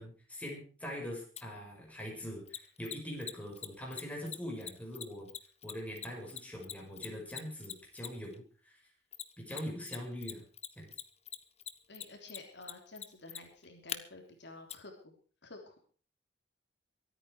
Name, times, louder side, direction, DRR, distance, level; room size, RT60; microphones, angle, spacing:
voice 1, 0.0-5.3 5.6-8.8 9.4-10.4 10.8-10.9, equal, 10° left, -1 dB, 6.0 m, -43 dB
Mechanisms, 1.4-1.5 2.5-8.3 9.1-10.0 10.2-14.0 14.7-14.8, left 9 dB, 35° left, 1.1 m, -42 dB
voice 2, 11.9-15.2 15.4-15.8, left 2 dB, 65° left, 3 dB, 3.4 m, -51 dB
23.5 x 9.1 x 4.9 m, 0.40 s
head